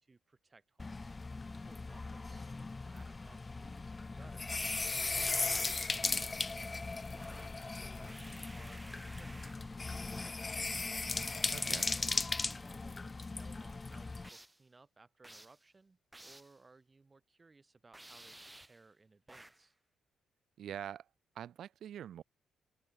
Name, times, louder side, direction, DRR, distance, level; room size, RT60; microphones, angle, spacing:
voice 1, 0.0-1.1 1.4-6.4 7.2-10.5 12.1-19.7, right 3 dB, 25° right, 3.1 m, -63 dB
sound 1, 0.8-14.3, left 3 dB, 25° left, 0.3 m, -38 dB
sound 2, 4.5-5.7 7.1-7.7 8.0-9.7 10.1-10.5 11.6-12.1 14.2-14.6 15.2-15.6 16.1-16.6 17.9-18.8 19.3-19.7, right 1 dB, 10° right, 2.7 m, -54 dB
voice 2, 11.5-11.9 20.6-21.1 21.3-22.2, right 10 dB, 70° right, 0.5 m, -44 dB
open air
cardioid pair, 90°, 0 cm